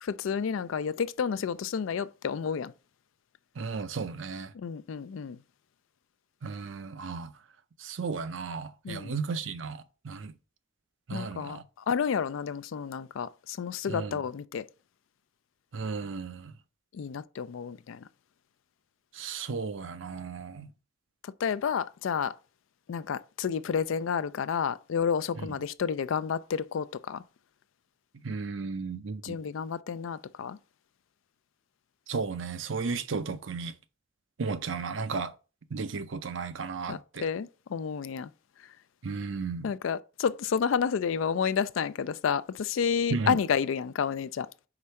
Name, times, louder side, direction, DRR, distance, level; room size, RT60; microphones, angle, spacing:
voice 1, 0.0-2.7 4.5-5.4 8.8-9.2 11.1-11.6 11.9-14.6 16.9-18.0 21.4-22.3 22.9-27.2 29.2-30.6 36.9-38.3 39.6-44.5, left 6 dB, 85° left, 0.4 m, -30 dB
voice 2, 3.6-4.5 6.4-7.3 7.8-10.3 11.1-11.6 13.9-14.2 15.7-16.5 19.2-20.7 25.4-25.5 28.2-29.4 32.1-33.7 34.4-35.3 35.7-37.3 39.0-39.7 43.1-43.4, right 4 dB, 70° right, 0.6 m, -34 dB
4.9 x 4.2 x 5.6 m
head